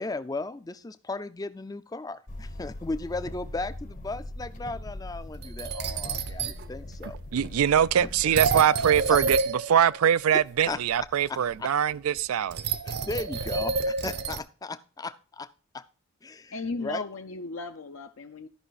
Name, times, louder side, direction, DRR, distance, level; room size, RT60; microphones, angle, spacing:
voice 1, 0.0-7.2 8.0-8.1 9.1-9.2 10.7-11.4 12.8-15.5 15.7-15.8 16.2-16.5 16.8-17.0, left 3 dB, 15° left, 0.4 m, -36 dB
sound 1, 2.3-8.3, left 1 dB, 35° left, 0.8 m, -41 dB
sound 2, 5.3-6.7 7.0-7.1 8.1-10.4 10.7-11.0 12.2-12.3 12.5-14.4, right 4 dB, 50° right, 0.7 m, -29 dB
voice 2, 7.3-9.4 9.7-12.7, right 9 dB, 85° right, 0.4 m, -23 dB
voice 3, 16.5-18.5, left 3 dB, 65° left, 0.6 m, -35 dB
13.0 x 5.5 x 4.0 m
head